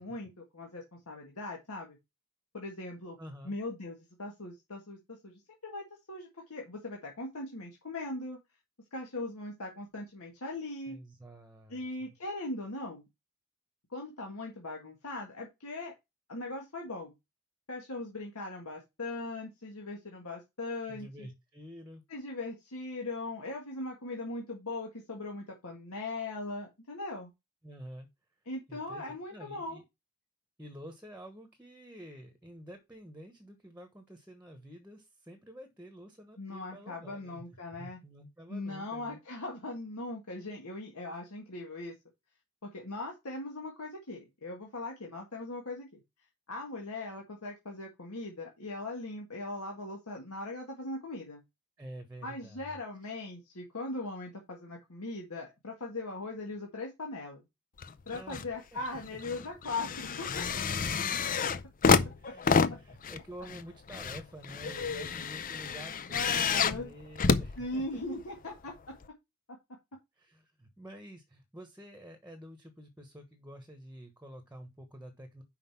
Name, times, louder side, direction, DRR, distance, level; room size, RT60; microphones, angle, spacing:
voice 1, 0.0-2.0 2.5-3.2 3.4-8.4 8.9-11.0 11.7-13.1 13.9-15.9 16.3-17.1 17.7-21.3 22.1-27.3 28.5-29.8 36.4-38.0 38.5-41.9 42.6-46.0 46.5-51.4 52.2-57.4 58.1-60.5 61.4-61.5 62.2-62.6 64.6-65.1 66.1-66.9 67.6-68.7, left 2 dB, 75° left, 0 dB, 1.8 m, -39 dB
voice 2, 3.2-3.5 10.9-12.1 20.9-22.0 27.6-28.1 28.7-29.8 30.6-37.4 37.8-39.2 51.8-52.8 53.0-53.1 58.1-58.8 59.1-59.2 62.2-68.0 70.2-75.4, equal, 10° right, 7 dB, 1.2 m, -49 dB
sound 1, 57.8-58.5 58.9-68.2 69.0-69.1, left 5 dB, 40° left, 0.5 m, -30 dB
5.8 x 5.1 x 5.8 m, 0.22 s
head